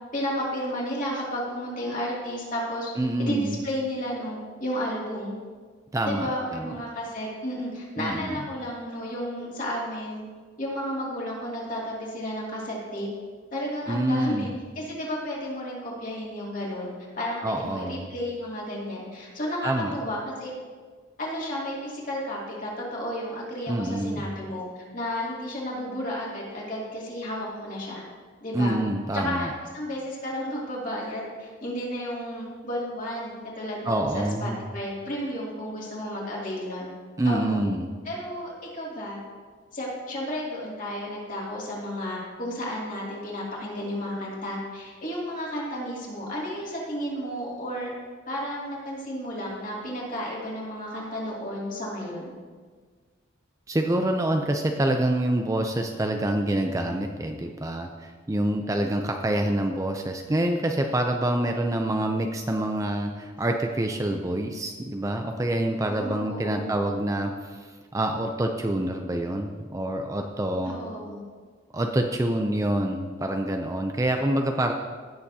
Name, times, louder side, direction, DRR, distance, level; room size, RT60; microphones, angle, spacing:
voice 1, 0.1-2.9 3.2-5.4 6.0-10.2 10.6-13.1 13.5-20.5 21.2-28.0 28.4-28.8 29.1-29.5 29.7-36.9 37.2-37.6 38.0-39.2 39.7-47.9 48.3-52.3 65.9-66.9 70.7-71.2, equal, 40° left, -4 dB, 2.5 m, -32 dB
voice 2, 3.0-3.6 5.9-6.7 8.0-8.4 13.9-14.5 17.4-18.1 19.6-19.9 23.7-24.3 28.5-29.5 33.8-34.7 37.2-37.9 53.7-70.7 71.7-74.7, right 1 dB, 15° right, 3 dB, 0.4 m, -26 dB
17.0 x 6.9 x 2.8 m, 1.5 s
head